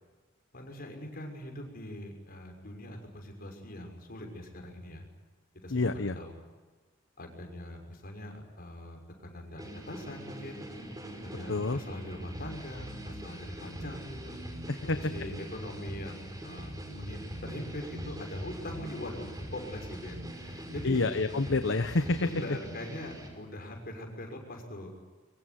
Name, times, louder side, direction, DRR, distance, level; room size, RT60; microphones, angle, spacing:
voice 1, 0.5-5.1 5.6-6.4 7.2-10.7 11.2-14.4 14.8-21.0 21.4-21.5 22.2-24.9, left 1 dB, 50° left, 3 dB, 6.3 m, -42 dB
voice 2, 5.7-6.2 11.5-11.8 14.7-15.0 20.8-22.2, left 3 dB, 65° left, 10 dB, 1.0 m, -28 dB
sound 1, 9.6-23.3, equal, 20° right, 5.4 m, -42 dB
23.5 x 23.5 x 9.9 m, 1.3 s
head